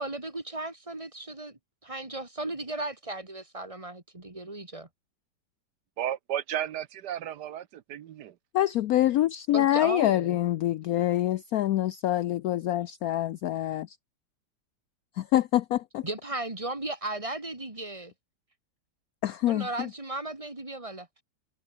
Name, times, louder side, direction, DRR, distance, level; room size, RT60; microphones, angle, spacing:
voice 1, 0.0-4.9 9.5-10.4 16.0-18.1 19.5-21.1, right 2 dB, 20° right, 2.9 m, -36 dB
voice 2, 6.0-8.3, right 10 dB, 70° right, 1.4 m, -33 dB
voice 3, 8.5-14.0 15.2-16.1 19.2-19.9, left 13 dB, 70° left, 1.0 m, -26 dB
omnidirectional pair, 1.9 m